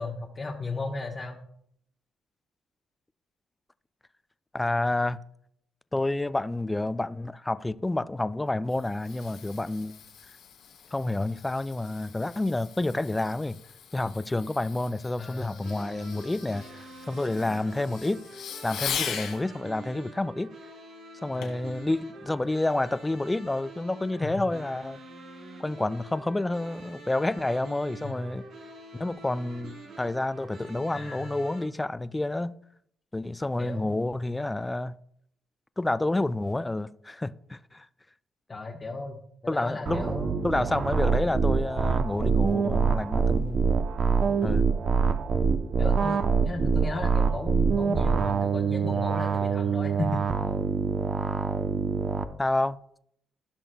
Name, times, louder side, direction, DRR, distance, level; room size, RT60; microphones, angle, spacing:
voice 1, 0.0-1.4 15.2-15.6 17.6-17.8 21.3-21.6 24.2-24.3 28.0-28.2 30.9-31.3 33.6-33.9 38.5-39.2 39.5-40.4 45.8-50.4, left 3 dB, 30° left, 1.0 m, -35 dB
voice 2, 4.5-5.2 5.9-9.9 10.9-13.6 13.9-18.2 18.6-20.5 21.2-25.0 25.6-28.5 28.9-32.6 33.1-35.0 35.8-37.9 39.5-40.1 40.4-43.6 44.4-44.6 52.4-52.8, left 2 dB, 15° left, 0.3 m, -29 dB
Fireworks, 8.4-19.4 21.4-21.7 22.3-22.4, left 8 dB, 90° left, 2.1 m, -40 dB
sound 1, 15.6-31.6, right 2 dB, 80° right, 3.7 m, -46 dB
sound 2, 39.9-52.2, right 5 dB, 50° right, 0.7 m, -25 dB
15.5 x 6.0 x 2.3 m
cardioid pair, 90°, 0 cm